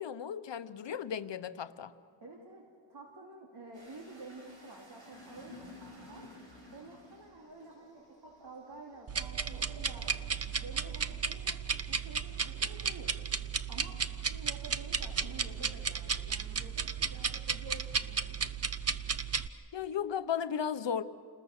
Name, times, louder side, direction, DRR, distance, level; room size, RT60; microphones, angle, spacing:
voice 1, 0.0-1.9 19.7-21.0, left 8 dB, 70° left, 12 dB, 1.0 m, -35 dB
voice 2, 2.2-2.6 2.9-6.3 6.7-10.1 10.4-11.6 11.9-13.1 13.7-18.3, right 3 dB, 60° right, -1 dB, 2.8 m, -50 dB
sound 1, 3.7-14.7 15.0-16.2, left 1 dB, 90° right, 7.7 m, -54 dB
sound 2, 9.1-19.5, right 6 dB, 35° right, 0.7 m, -34 dB
29.5 x 20.5 x 6.6 m, 2.3 s
wide cardioid pair, 135°, 45 cm